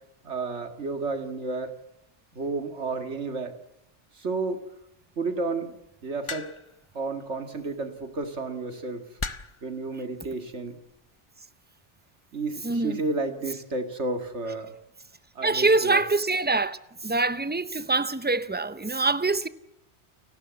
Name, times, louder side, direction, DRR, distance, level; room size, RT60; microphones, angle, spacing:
voice 1, 0.2-1.8 2.4-3.5 4.2-4.6 5.2-6.5 6.9-9.1 9.6-10.8 12.3-14.7 15.4-16.0, right 3 dB, 75° right, 2.3 m, -31 dB
sound 1, 6.3-6.8 8.0-8.3 9.2-9.7 10.6-11.0, left 4 dB, 30° left, 0.8 m, -35 dB
voice 2, 12.6-13.0 15.4-16.8 17.0-19.5, right 3 dB, 10° right, 0.5 m, -24 dB
29.5 x 12.0 x 8.1 m
omnidirectional pair, 1.2 m